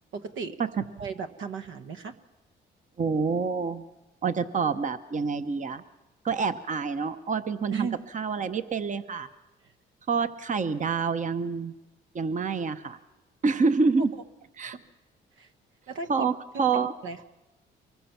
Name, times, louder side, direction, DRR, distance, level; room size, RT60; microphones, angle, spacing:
voice 1, 0.1-0.6 1.0-2.2 7.7-8.0 9.6-9.7 14.1-14.2 14.7-14.8 15.4-15.5 15.9-16.3 16.5-16.8 17.0-17.2, right 5 dB, 75° right, 8 dB, 1.2 m, -35 dB
voice 2, 3.0-3.8 4.2-5.8 6.2-7.9 8.1-9.3 10.1-11.7 12.1-13.0 13.4-14.1 14.6-14.8 16.1-16.3 16.6-16.9, right 5 dB, 40° right, 10 dB, 1.0 m, -27 dB
24.0 x 20.5 x 5.9 m, 1.0 s
cardioid pair, 90°, 20 cm